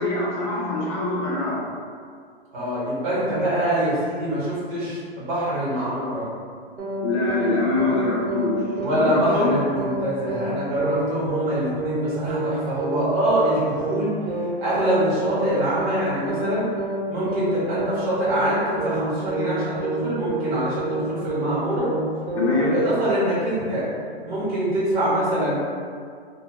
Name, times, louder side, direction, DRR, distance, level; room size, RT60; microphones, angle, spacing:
voice 1, 0.0-1.7 7.0-9.5 22.4-22.7, left 2 dB, 30° left, -4 dB, 0.5 m, -24 dB
voice 2, 2.5-6.3 8.8-14.1 14.4-16.6 17.1-21.9 22.6-23.9 24.2-25.6, right 1 dB, 35° right, -9 dB, 1.2 m, -24 dB
sound 1, 6.8-7.0 7.3-7.5 7.8-8.0 8.3-8.5 8.8-9.0 9.3-9.5 9.8-10.0 10.3-10.5 10.8-11.0 11.3-11.5 11.8-12.0 12.3-12.5 12.8-13.0 13.3-13.5 13.8-14.0 14.3-14.5 14.8-15.0 15.3-15.5 15.8-16.0 16.3-16.5 16.8-17.0 17.3-17.5 17.8-18.0 18.3-18.5 18.8-19.0 19.3-19.5 19.8-20.0 20.3-20.5 20.8-21.0 21.3-21.5 21.8-22.0 22.3-22.5, right 2 dB, 90° right, 1.1 m, -28 dB
2.2 x 2.1 x 3.5 m, 2.1 s
hypercardioid pair, 160°, 31 cm